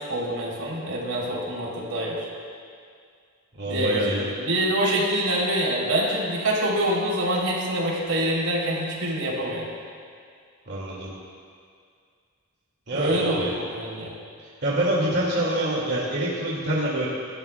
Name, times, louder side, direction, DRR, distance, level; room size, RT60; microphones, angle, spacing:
voice 1, 0.1-2.3 3.7-9.7 12.9-14.2, right 1 dB, 85° right, -4 dB, 3.5 m, -26 dB
voice 2, 3.6-4.3 10.7-11.1 12.9-13.6 14.6-17.1, right 1 dB, 50° right, -6 dB, 2.4 m, -25 dB
25.0 x 12.5 x 2.3 m, 2.2 s
head